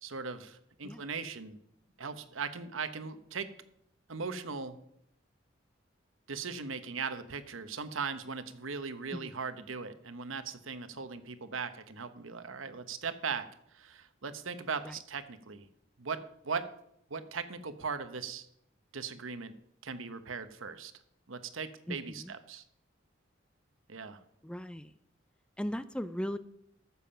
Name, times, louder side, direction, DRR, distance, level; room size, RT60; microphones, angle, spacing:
voice 1, 0.0-1.6 2.0-3.5 4.1-4.8 6.3-15.7 16.0-16.2 16.4-16.7 17.1-18.5 18.9-19.5 19.8-20.9 21.3-22.6 23.9-24.2, right 5 dB, 90° right, 11 dB, 1.0 m, -39 dB
voice 2, 21.9-22.3 24.4-24.9 25.6-26.4, equal, 5° left, 13 dB, 0.4 m, -38 dB
14.0 x 7.2 x 5.7 m, 0.73 s
head